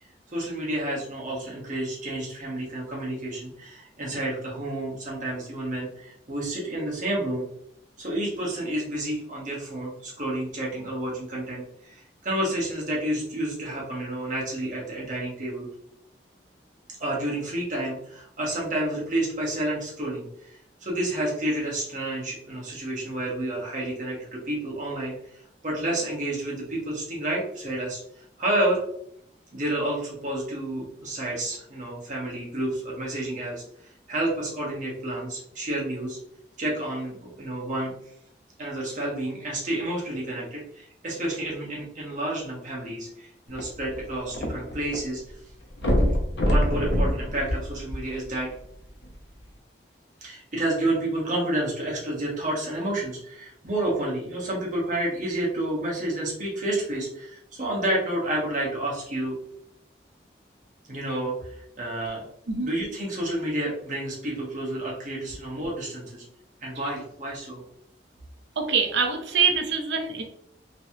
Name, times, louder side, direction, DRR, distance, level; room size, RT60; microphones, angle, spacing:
voice 1, 0.3-7.4 8.0-15.7 17.0-28.8 29.5-36.2 36.6-37.9 38.6-45.2 45.8-46.0 46.4-48.5 50.2-59.3 60.9-62.2 62.6-66.2 66.6-67.6, right 1 dB, 45° right, -4 dB, 1.1 m, -30 dB
sound 1, 43.5-45.0 45.3-45.4 45.8-48.3 49.0-49.1, equal, 65° left, 0.7 m, -25 dB
voice 2, 68.6-70.2, right 5 dB, 75° right, 3 dB, 0.6 m, -24 dB
3.1 x 3.0 x 2.7 m, 0.72 s
head